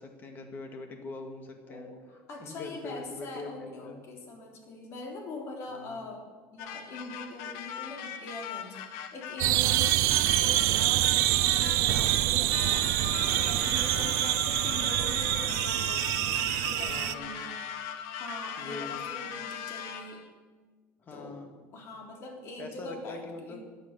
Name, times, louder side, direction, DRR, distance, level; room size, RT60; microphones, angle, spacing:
voice 1, 0.0-1.9 2.4-4.0 5.7-6.0 9.9-10.2 13.9-14.2 16.9-17.4 18.6-19.0 21.0-21.6 22.6-23.6, left 3 dB, 35° left, 5 dB, 1.9 m, -43 dB
voice 2, 1.7-17.7 18.1-20.2 21.1-23.6, left 2 dB, 50° left, 0 dB, 3.3 m, -43 dB
sound 1, 6.6-20.3, left 8 dB, 85° left, 1.2 m, -39 dB
sound 2, 9.4-17.1, right 17 dB, 75° right, 0.5 m, -26 dB
12.5 x 9.6 x 6.6 m, 1.4 s
cardioid pair, 135°, 6 cm